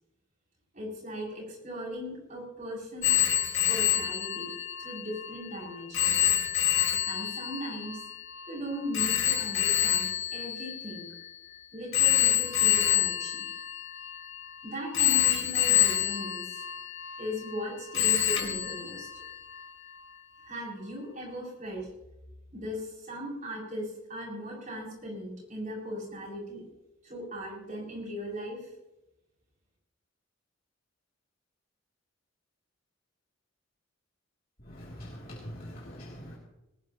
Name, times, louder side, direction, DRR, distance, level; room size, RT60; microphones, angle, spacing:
voice 1, 0.7-3.2 3.7-4.5 4.8-6.4 7.1-8.0 8.5-11.1 11.7-13.5 14.6-16.6 17.2-19.1 20.4-21.9 22.5-26.6 27.0-28.7, equal, 40° right, -3 dB, 7.6 m, -38 dB
Telephone, 3.0-11.4 11.9-14.5 14.9-17.6 17.9-19.7, left 12 dB, 70° left, 3.4 m, -27 dB
voice 2, 34.8-36.4, equal, 45° left, -5 dB, 3.2 m, -43 dB
20.5 x 19.0 x 3.1 m, 0.93 s
head